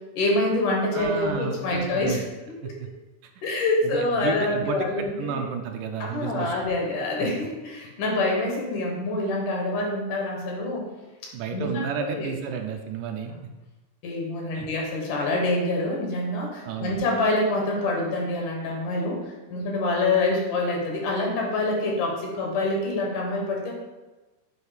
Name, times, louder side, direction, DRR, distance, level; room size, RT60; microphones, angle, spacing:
voice 1, 0.2-2.2 3.4-5.4 6.0-10.9 11.5-12.3 14.0-23.7, left 2 dB, 75° left, -1 dB, 2.7 m, -26 dB
voice 2, 0.9-2.2 2.6-2.9 3.9-6.5 11.3-13.3 14.5-14.7 16.6-16.9, right 6 dB, 80° right, 4 dB, 2.0 m, -32 dB
7.8 x 2.7 x 4.9 m, 1.1 s
omnidirectional pair, 3.7 m